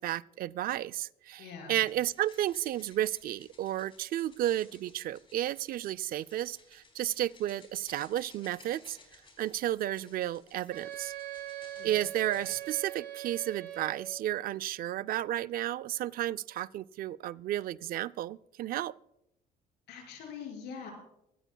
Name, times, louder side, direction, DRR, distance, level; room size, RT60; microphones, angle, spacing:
voice 1, 0.0-9.0 9.4-11.1 11.8-18.9, right 13 dB, 60° right, 0.4 m, -32 dB
voice 2, 1.4-1.8 11.7-11.9 12.3-12.4 19.9-20.9, left 6 dB, 80° left, 5.5 m, -43 dB
sound 1, 1.8-12.8, left 3 dB, 30° left, 4.1 m, -59 dB
Wind instrument woodwind instrument, 10.7-14.3, right 13 dB, 85° right, 3.7 m, -42 dB
24.0 x 13.5 x 2.3 m
cardioid pair, 110°, 17 cm